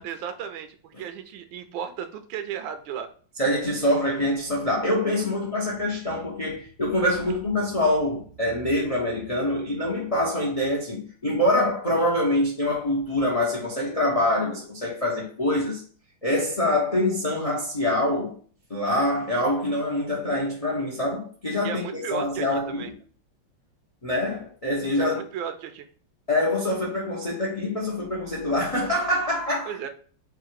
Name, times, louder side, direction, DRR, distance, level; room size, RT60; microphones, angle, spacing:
voice 1, 0.0-3.1 21.6-22.9 25.0-25.9 29.7-29.9, right 8 dB, 75° right, 1.3 m, -34 dB
voice 2, 3.4-15.8 16.2-18.4 18.7-22.9 24.0-25.2 26.3-29.8, left 1 dB, 55° left, 0.4 m, -25 dB
3.7 x 2.4 x 4.5 m
omnidirectional pair, 2.2 m